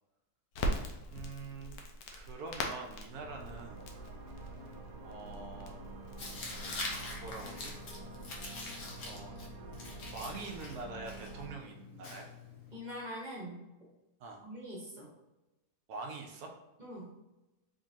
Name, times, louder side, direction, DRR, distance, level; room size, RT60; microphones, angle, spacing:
Crackle, 0.5-8.5, left 1 dB, 90° left, 1.3 m, -42 dB
voice 1, 1.1-1.7 2.1-3.9 5.0-5.8 7.2-7.7 9.0-9.4 10.1-12.3 14.2-14.4 15.9-16.5, right 3 dB, 70° right, 2 dB, 1.0 m, -44 dB
Home Sweet Broken Neve, 3.1-11.6, right 3 dB, 85° right, 1.3 m, -48 dB
Tearing, 6.2-12.8, left 3 dB, 65° left, 1.2 m, -44 dB
voice 2, 12.7-13.7 14.4-15.1 16.8-17.2, equal, 35° right, -4 dB, 0.9 m, -43 dB
3.8 x 3.5 x 2.7 m, 1.0 s
omnidirectional pair, 1.8 m